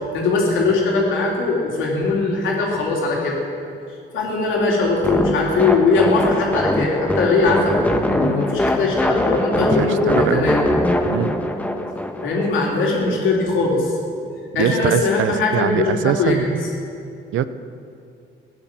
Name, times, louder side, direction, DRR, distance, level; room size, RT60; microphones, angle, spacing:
voice 1, 0.1-3.4 4.1-7.7 8.1-10.6 12.2-13.9 14.5-16.5, left 3 dB, 80° left, -2 dB, 3.7 m, -20 dB
sound 1, 5.0-12.5, left 1 dB, 5° left, 1.3 m, -22 dB
voice 2, 9.8-10.5 11.1-11.3 14.6-16.5 17.3-17.4, right 10 dB, 75° right, 13 dB, 0.7 m, -22 dB
16.0 x 9.8 x 7.6 m, 2.5 s
cardioid pair, 90°, 20 cm